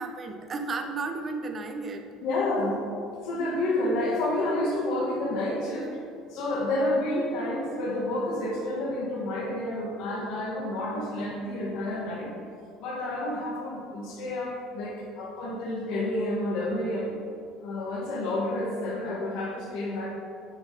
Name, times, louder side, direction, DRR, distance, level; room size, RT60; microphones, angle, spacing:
voice 1, 0.0-2.1, right 3 dB, 25° right, 5 dB, 0.4 m, -33 dB
voice 2, 2.2-2.8 3.2-6.0 6.3-12.3 12.8-17.2 17.6-20.1, left 1 dB, 65° left, -2 dB, 1.5 m, -29 dB
9.6 x 3.5 x 4.0 m, 2.4 s
cardioid pair, 165°, 0 cm